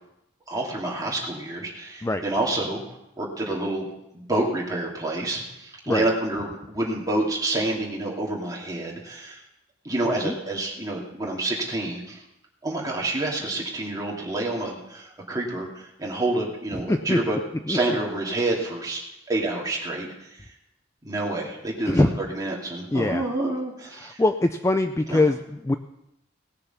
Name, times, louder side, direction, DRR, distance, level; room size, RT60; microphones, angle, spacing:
voice 1, 0.5-2.8 3.2-3.9 4.1-9.4 9.8-12.2 12.6-19.0 19.3-20.4 21.0-24.2 25.1-25.3, right 2 dB, 20° right, -3 dB, 2.6 m, -28 dB
voice 2, 16.9-17.2 17.7-17.8 21.9-22.1 22.9-23.2 24.2-25.7, left 2 dB, 15° left, 8 dB, 0.3 m, -22 dB
18.5 x 6.8 x 5.8 m, 0.86 s
head